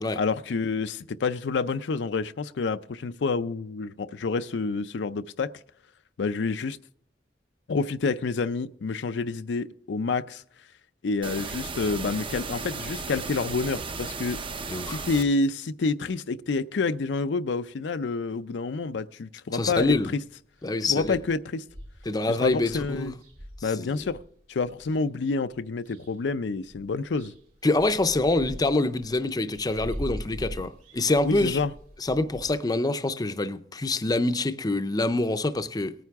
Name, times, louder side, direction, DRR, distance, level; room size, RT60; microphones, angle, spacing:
voice 1, 0.2-5.5 6.2-6.8 7.7-10.4 11.0-14.4 14.9-20.2 20.9-21.6 22.3-23.1 23.6-24.2 24.5-27.3 31.2-31.7, left 4 dB, 85° left, 0.5 m, -28 dB
sound 1, 11.2-15.2, right 4 dB, 30° right, 0.6 m, -35 dB
voice 2, 14.7-15.1 19.5-20.1 20.6-21.2 22.1-23.1 23.7-24.1 27.6-31.6 32.0-35.9, left 2 dB, 20° left, 0.5 m, -26 dB
sound 2, 19.7-20.3 20.6-20.7 20.9-25.0 25.5-26.4 26.6-32.5, equal, 55° right, 3.6 m, -42 dB
18.5 x 9.3 x 3.5 m
head